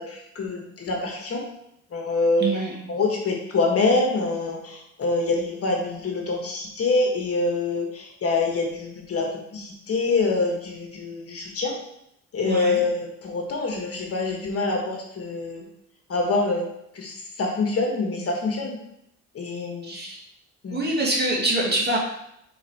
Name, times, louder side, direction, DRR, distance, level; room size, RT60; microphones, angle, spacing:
voice 1, 0.0-1.4 1.9-2.5 2.9-11.7 12.3-15.7 16.1-16.7 16.9-18.8 19.3-20.0 20.6-20.9, left 3 dB, 50° left, 1 dB, 1.4 m, -25 dB
voice 2, 2.4-2.8 12.4-12.8 19.8-20.2 20.7-22.0, right 2 dB, 35° right, -2 dB, 1.8 m, -25 dB
4.7 x 4.4 x 4.6 m, 0.78 s
cardioid pair, 90°, 30 cm